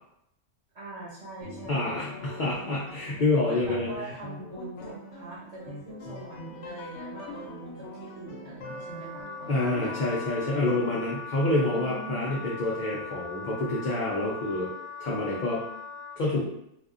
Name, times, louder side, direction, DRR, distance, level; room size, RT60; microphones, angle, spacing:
voice 1, 0.7-2.0 3.4-9.9 11.7-12.5, right 2 dB, 70° right, -5 dB, 1.4 m, -43 dB
sound 1, 1.4-10.8, left 1 dB, 70° left, 0.9 m, -42 dB
voice 2, 1.7-3.9 9.5-14.7 15.0-15.6 16.2-16.5, left 2 dB, 50° left, -5 dB, 0.6 m, -27 dB
Wind instrument woodwind instrument, 8.6-16.2, left 4 dB, 45° right, 0.7 m, -41 dB
3.5 x 2.5 x 2.5 m, 0.76 s
omnidirectional pair, 1.3 m